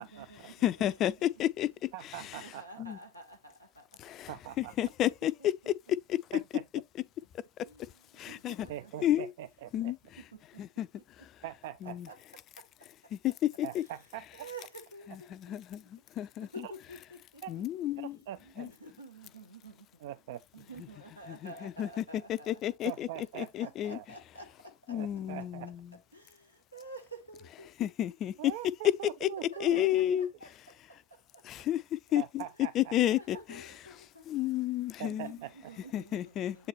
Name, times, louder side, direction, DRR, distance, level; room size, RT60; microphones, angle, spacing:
voice 1, 0.0-1.7 2.2-3.8 4.8-5.1 5.4-5.5 7.6-7.8 8.3-9.2 11.8-12.2 13.7-14.0 14.3-15.6 16.5-17.4 18.0-19.8 20.5-22.6 23.4-24.5 24.9-25.0 26.1-26.4 26.7-27.9 29.5-30.5 32.5-32.6 33.1-34.2 35.1-36.7, right 2 dB, 90° right, 1.6 m, -50 dB
voice 2, 0.6-1.9 2.8-3.0 4.0-4.3 4.6-5.3 6.1-6.2 8.2-8.7 9.0-9.3 9.7-10.0 10.6-10.9 11.8-12.1 13.1-13.8 15.3-16.5 17.5-18.2 18.6-18.7 21.3-23.1 23.4-24.0 24.9-25.9 27.8-28.3 29.2-29.3 29.6-30.3 31.4-31.8 32.1-32.4 32.7-33.4 34.3-35.4 35.9-36.7, left 12 dB, 35° left, 0.4 m, -31 dB
voice 3, 1.9-2.8 4.3-4.7 6.3-6.6 8.7-9.9 11.4-11.9 13.6-14.3 16.6-16.7 17.4-17.5 18.0-18.7 20.0-20.4 22.8-24.0 24.9-25.7 28.4-30.0 32.2-32.9 35.0-35.5, right 12 dB, 55° right, 0.4 m, -42 dB
7.7 x 4.0 x 3.0 m
figure-of-eight pair, 85°, 0 cm